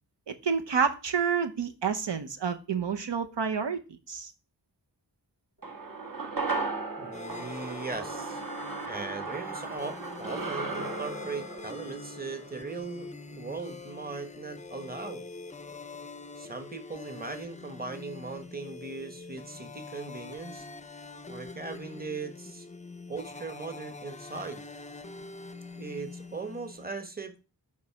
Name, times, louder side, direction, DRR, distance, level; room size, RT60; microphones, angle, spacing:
voice 1, 0.3-3.8 4.1-4.3, right 6 dB, 75° right, 0.8 m, -29 dB
sound 1, 5.6-14.1 14.4-14.5, right 3 dB, 50° right, 1.4 m, -37 dB
voice 2, 7.0-8.4 8.8-13.1 13.4-15.2 16.4-20.7 21.3-22.7 23.1-24.6 25.8-27.4, right 4 dB, 20° right, 1.2 m, -39 dB
sound 2, 7.1-26.9, left 3 dB, 15° left, 0.5 m, -44 dB
9.2 x 3.2 x 5.7 m
cardioid pair, 40°, 43 cm